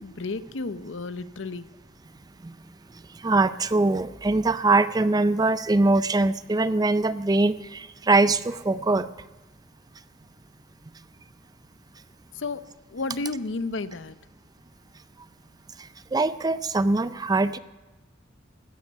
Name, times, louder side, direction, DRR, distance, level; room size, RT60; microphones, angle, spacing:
voice 1, 0.0-1.7 12.3-12.6 12.9-14.2, left 3 dB, 70° left, 13 dB, 0.7 m, -32 dB
voice 2, 3.1-9.1 15.8-17.6, right 2 dB, 20° right, 14 dB, 0.4 m, -23 dB
16.5 x 13.0 x 5.4 m, 1.1 s
head